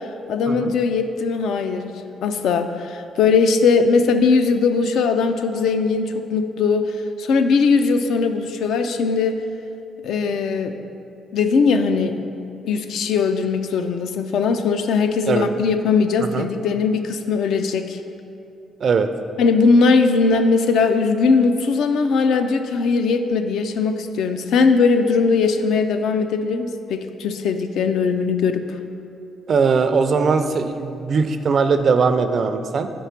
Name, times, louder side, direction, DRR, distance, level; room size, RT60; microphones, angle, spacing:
voice 1, 0.3-1.9 2.2-6.9 7.2-9.4 10.0-10.7 11.3-12.2 12.6-18.0 19.4-28.6, left 4 dB, 75° left, 8 dB, 0.4 m, -19 dB
voice 2, 16.2-16.5 18.8-19.1 29.5-32.9, right 5 dB, 50° right, 9 dB, 0.4 m, -20 dB
5.0 x 4.6 x 5.8 m, 2.7 s
cardioid pair, 90°, 0 cm